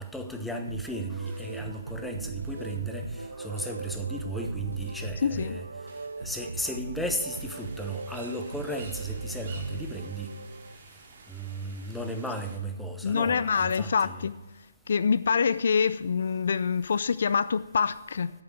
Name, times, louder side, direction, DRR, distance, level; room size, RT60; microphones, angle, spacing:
voice 1, 0.0-5.6 6.2-10.3 11.3-14.2, right 1 dB, ahead, 0.8 m, -35 dB
sound 1, 0.7-10.8, right 3 dB, 85° right, 0.6 m, -38 dB
voice 2, 5.2-5.6 13.0-14.4 14.9-18.3, left 6 dB, 65° left, 0.4 m, -25 dB
sound 2, 7.3-12.6, right 4 dB, 45° right, 2.6 m, -50 dB
8.8 x 7.0 x 7.5 m
hypercardioid pair, 150°, 0 cm